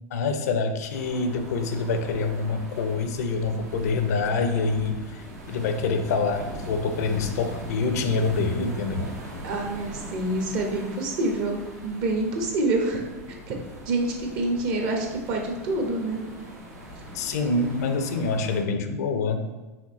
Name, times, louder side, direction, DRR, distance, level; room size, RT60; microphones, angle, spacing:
voice 1, 0.1-5.2 5.5-9.1 17.1-19.5, left 4 dB, 75° left, 7 dB, 0.5 m, -26 dB
sound 1, 0.9-18.6, right 1 dB, 85° right, 1.1 m, -40 dB
voice 2, 9.4-13.1 13.5-13.6 13.9-16.2, right 2 dB, 60° right, 2 dB, 1.0 m, -27 dB
4.9 x 3.3 x 3.0 m, 1.2 s
hypercardioid pair, 100°, 9 cm